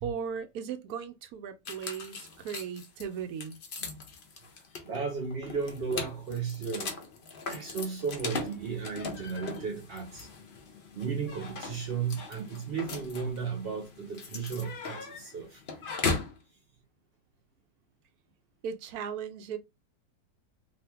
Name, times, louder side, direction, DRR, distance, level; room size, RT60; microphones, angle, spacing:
voice 1, 0.0-3.6 18.6-19.6, right 7 dB, 70° right, 1.0 m, -37 dB
sound 1, 1.6-16.4, left 4 dB, 90° left, 0.4 m, -39 dB
voice 2, 4.9-6.9 7.5-10.3 10.9-15.6, right 5 dB, 90° right, 0.5 m, -34 dB
2.8 x 2.6 x 3.3 m
omnidirectional pair, 1.8 m